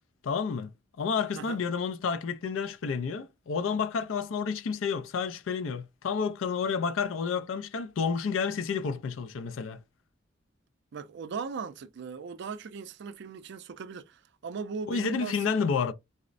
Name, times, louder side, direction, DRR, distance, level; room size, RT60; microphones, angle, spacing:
voice 1, 0.2-0.7 1.0-9.8 14.9-15.9, left 5 dB, 80° left, 0.4 m, -30 dB
voice 2, 10.9-15.4, right 5 dB, 60° right, 0.4 m, -38 dB
4.1 x 2.0 x 2.4 m
head